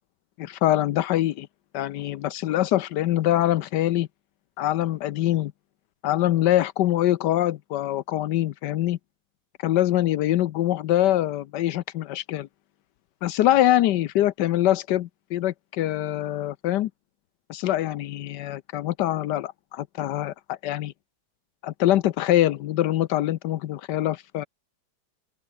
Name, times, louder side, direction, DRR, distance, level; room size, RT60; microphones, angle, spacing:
voice 1, 0.4-1.5 1.7-4.1 4.6-5.5 6.0-9.0 9.6-12.5 13.2-16.9 17.5-20.9 21.6-24.5, left 13 dB, 80° left, 1.3 m, -24 dB
open air
omnidirectional pair, 1.8 m